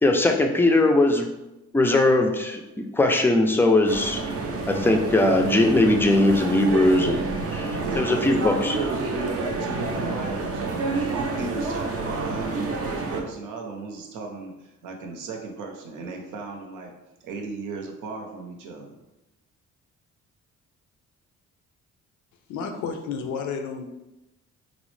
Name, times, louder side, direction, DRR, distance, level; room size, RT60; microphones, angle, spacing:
voice 1, 0.0-1.3 1.7-4.2 4.7-7.2 7.5-8.7, left 2 dB, 10° left, 4 dB, 0.3 m, -20 dB
sound 1, 3.9-13.2, right 3 dB, 50° right, 0.5 m, -29 dB
voice 2, 7.8-16.9 17.2-19.0, right 3 dB, 85° right, 2 dB, 0.7 m, -35 dB
voice 3, 22.5-23.8, left 5 dB, 75° left, 5 dB, 0.5 m, -31 dB
3.9 x 2.0 x 3.1 m, 0.97 s
cardioid pair, 90°, 30 cm